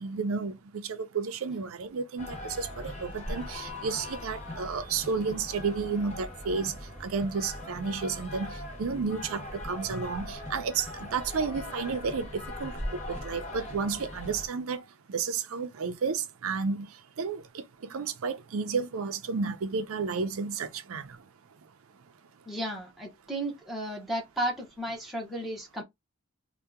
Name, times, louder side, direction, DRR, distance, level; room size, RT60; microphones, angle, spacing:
voice 1, 0.0-14.8 15.1-16.9 17.2-17.4 17.9-21.2, right 5 dB, 80° right, 0.5 m, -32 dB
sound 1, 2.2-14.5, left 1 dB, 30° left, 0.9 m, -40 dB
voice 2, 22.5-25.8, right 1 dB, ahead, 0.8 m, -34 dB
2.7 x 2.2 x 3.4 m
head